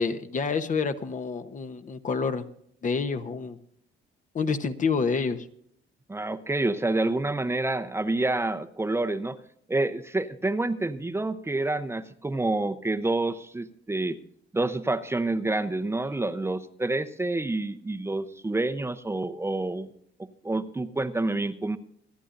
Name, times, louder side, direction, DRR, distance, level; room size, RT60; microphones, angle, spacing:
voice 1, 0.0-2.4 2.8-3.6 4.3-5.5, left 5 dB, 40° left, 9 dB, 1.0 m, -28 dB
voice 2, 6.1-9.4 9.7-14.2 14.5-19.9 20.4-21.8, right 2 dB, 10° right, 8 dB, 0.8 m, -28 dB
27.0 x 10.0 x 2.6 m, 0.68 s
cardioid pair, 120°, 21 cm